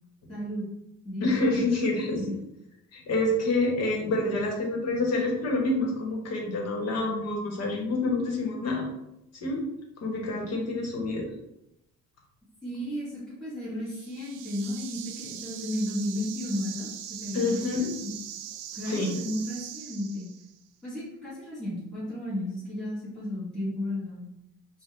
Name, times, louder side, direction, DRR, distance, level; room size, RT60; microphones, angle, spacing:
voice 1, 0.3-0.7 1.0-1.7 2.2-2.3 12.6-16.9 17.2-17.9 18.8-20.3 20.8-24.2, left 1 dB, ahead, -11 dB, 1.5 m, -33 dB
voice 2, 1.2-2.2 2.9-8.8 9.4-9.6 10.0-11.2 17.3-17.9 18.9-19.1, left 2 dB, 55° left, 0 dB, 1.2 m, -27 dB
sound 1, 13.9-20.6, right 10 dB, 85° right, 0.5 m, -41 dB
5.4 x 2.4 x 3.3 m, 0.85 s
cardioid pair, 170°, 30 cm